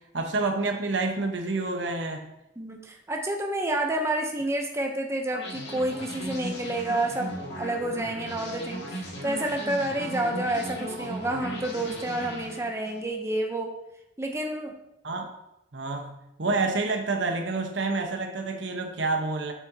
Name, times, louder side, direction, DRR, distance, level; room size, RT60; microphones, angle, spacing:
voice 1, 0.1-2.2 15.0-15.3 15.7-16.1 16.4-19.5, right 3 dB, 70° right, 4 dB, 1.0 m, -28 dB
voice 2, 2.6-8.8 9.2-13.7 14.2-14.7, right 1 dB, 15° right, 2 dB, 0.6 m, -29 dB
sound 1, 5.3-13.0, right 1 dB, 65° left, 1.7 m, -37 dB
7.3 x 6.8 x 2.8 m, 0.88 s
head